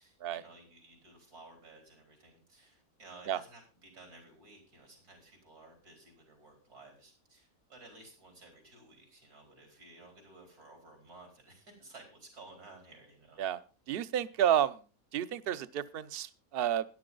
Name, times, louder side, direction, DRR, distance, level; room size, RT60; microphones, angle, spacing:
voice 1, 0.0-13.4, right 2 dB, 90° right, 2 dB, 5.1 m, -55 dB
voice 2, 13.9-14.8 15.1-16.8, right 10 dB, 55° right, 15 dB, 0.7 m, -30 dB
13.0 x 10.5 x 3.9 m, 0.34 s
omnidirectional pair, 1.6 m